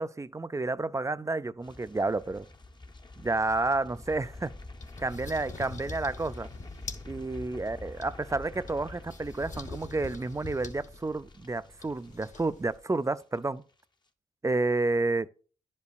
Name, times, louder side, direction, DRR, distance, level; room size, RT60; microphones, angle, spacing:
voice 1, 0.0-2.5 3.2-4.5 5.0-6.5 7.1-13.6 14.4-15.3, right 2 dB, 15° right, 0.4 m, -30 dB
sound 1, 1.6-12.8 13.0-13.4 13.7-13.8, left 2 dB, 20° left, 0.8 m, -47 dB
sound 2, 3.9-12.8, left 3 dB, 40° left, 1.1 m, -46 dB
10.5 x 5.3 x 2.4 m
supercardioid pair, 45°, 20 cm